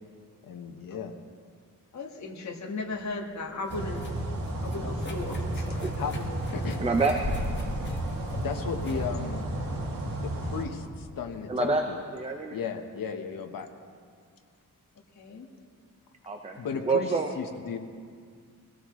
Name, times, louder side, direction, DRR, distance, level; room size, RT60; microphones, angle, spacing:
voice 1, 0.4-1.1 5.7-6.1 6.5-6.8 8.4-9.5 10.2-12.0 12.5-13.7 16.5-17.8, left 6 dB, 80° left, 4 dB, 1.3 m, -35 dB
voice 2, 1.9-4.0 4.6-5.7 6.0-6.4 15.2-15.5, left 3 dB, 55° left, 0 dB, 1.6 m, -36 dB
sound 1, 2.9-10.6, left 1 dB, 35° left, 1.7 m, -41 dB
sound 2, 3.7-10.6, right 1 dB, 80° right, 2.5 m, -32 dB
voice 3, 6.8-7.1 11.5-11.8 12.1-12.6 16.3-16.6 16.9-17.3, right 4 dB, 20° right, 3 dB, 0.7 m, -27 dB
22.5 x 17.0 x 3.2 m, 2.1 s
wide cardioid pair, 170°, 33 cm